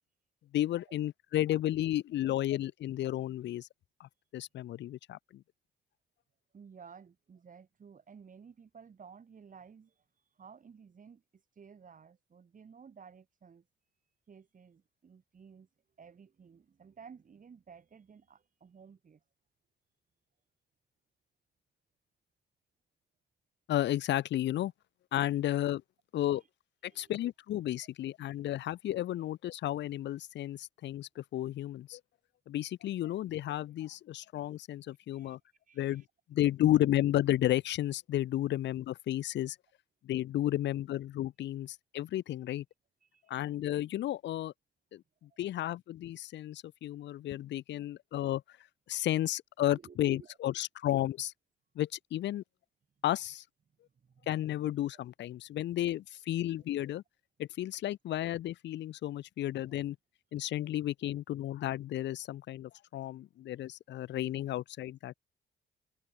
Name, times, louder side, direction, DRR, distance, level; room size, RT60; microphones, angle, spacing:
voice 1, 0.5-3.7 4.0-5.4 23.7-24.7 25.1-25.8 26.1-26.4 26.8-32.0 32.5-35.4 35.8-36.0 36.3-39.6 40.0-42.6 43.3-44.5 44.9-48.6 48.9-51.3 51.8-52.4 53.0-53.4 54.3-57.0 57.4-60.0 60.3-65.1, left 13 dB, 65° left, 0.6 m, -33 dB
voice 2, 6.5-10.0 10.3-13.7 14.3-15.7 16.0-19.2 26.2-26.5 26.8-27.1 35.1-35.4 35.7-36.1 43.0-43.4 45.3-45.4 49.7-50.4 53.8-54.3, right 6 dB, 40° right, 3.7 m, -55 dB
cardioid pair, 90°, 20 cm